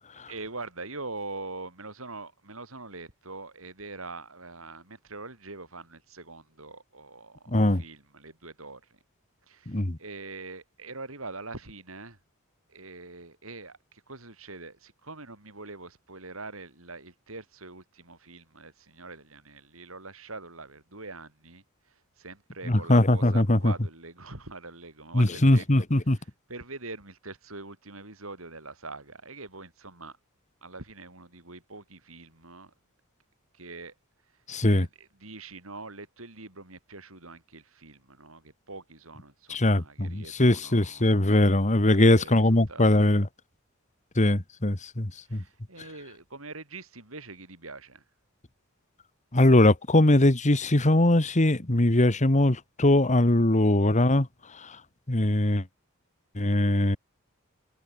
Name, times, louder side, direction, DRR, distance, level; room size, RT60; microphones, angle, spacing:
voice 1, 0.3-9.0 9.5-12.2 12.7-30.2 30.6-32.7 33.5-33.9 34.6-41.1 41.9-43.0 45.3-48.0, right 3 dB, 70° right, 7.8 m, -43 dB
voice 2, 7.5-7.8 9.7-10.0 22.7-23.7 25.1-26.2 34.5-34.9 39.5-43.3 44.2-45.4 49.3-54.3 55.1-55.6 56.4-57.0, left 1 dB, 35° left, 1.8 m, -21 dB
head